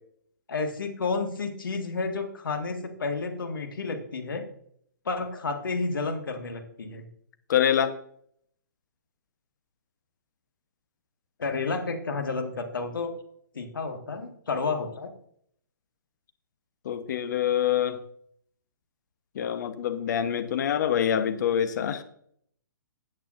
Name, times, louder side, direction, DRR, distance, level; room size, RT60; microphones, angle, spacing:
voice 1, 0.5-4.5 5.1-7.1 11.4-13.1 13.5-15.1, left 4 dB, 80° left, 5 dB, 1.8 m, -31 dB
voice 2, 7.5-7.9 16.8-18.0 19.3-22.0, left 9 dB, 60° left, 9 dB, 1.1 m, -25 dB
14.0 x 8.7 x 2.6 m, 0.66 s
hypercardioid pair, 130°, 11 cm